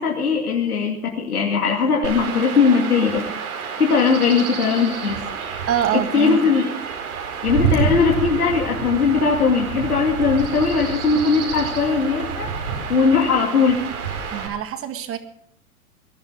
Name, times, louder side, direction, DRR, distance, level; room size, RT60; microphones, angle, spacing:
voice 1, 0.0-3.2 3.8-5.2 5.9-6.7 7.4-12.5 12.9-13.8, left 5 dB, 90° left, -1 dB, 2.7 m, -19 dB
Chirp tweet / Wind / Stream, 2.0-14.5, right 6 dB, 70° right, 4.4 m, -28 dB
voice 2, 5.7-6.4 14.3-15.2, right 9 dB, 30° right, 9 dB, 1.9 m, -24 dB
21.0 x 11.0 x 5.2 m, 0.71 s
hypercardioid pair, 105°, 44 cm